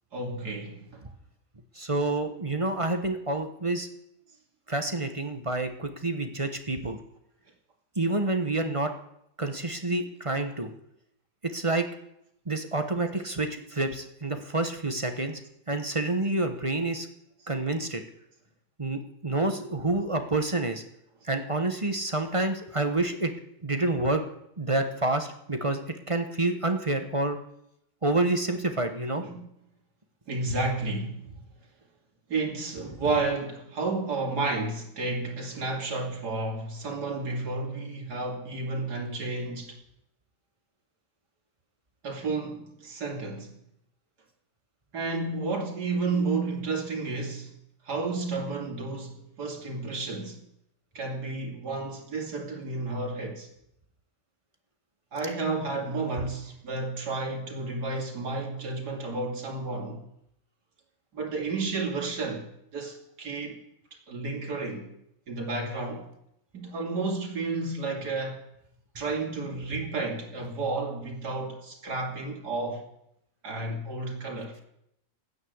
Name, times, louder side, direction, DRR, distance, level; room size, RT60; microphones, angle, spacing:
voice 1, 0.1-1.0 29.2-29.4 30.3-31.3 32.3-39.8 42.0-43.5 44.9-47.5 47.9-50.4 50.9-53.5 55.1-60.0 61.1-62.5 62.7-63.6 64.1-64.9 65.3-66.1 66.5-68.4 68.9-72.8 73.4-74.5, right 3 dB, 75° right, 3.1 m, -31 dB
voice 2, 1.7-3.9 4.7-7.0 8.0-8.9 9.4-10.7 11.5-11.8 12.5-15.4 15.7-17.1 17.5-18.0 18.8-20.8 21.3-23.3 23.6-24.2 24.6-25.8 26.1-27.4 28.0-29.2, right 2 dB, 20° right, 1.0 m, -28 dB
13.0 x 9.7 x 8.0 m
omnidirectional pair, 1.7 m